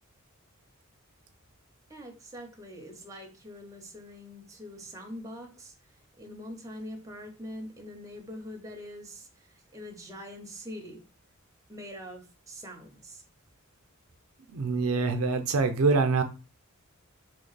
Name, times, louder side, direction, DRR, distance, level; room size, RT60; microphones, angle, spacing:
voice 1, 1.9-5.7 6.2-11.0 11.7-13.2, equal, 15° right, 0.6 m, -43 dB
voice 2, 14.5-16.2, right 4 dB, 85° right, 0.5 m, -25 dB
2.9 x 2.2 x 3.9 m
head